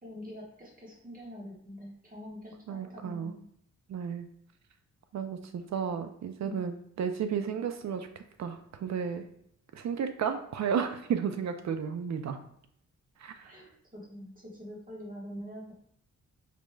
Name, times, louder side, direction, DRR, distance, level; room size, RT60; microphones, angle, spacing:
voice 1, 0.0-3.4 6.4-6.6 13.4-15.7, equal, 30° right, -3 dB, 1.4 m, -45 dB
voice 2, 2.7-3.3 3.9-4.3 5.1-9.2 9.7-12.4 13.2-13.6, right 7 dB, 65° right, 8 dB, 0.4 m, -33 dB
5.0 x 3.0 x 2.2 m, 0.70 s
cardioid pair, 70°, 30 cm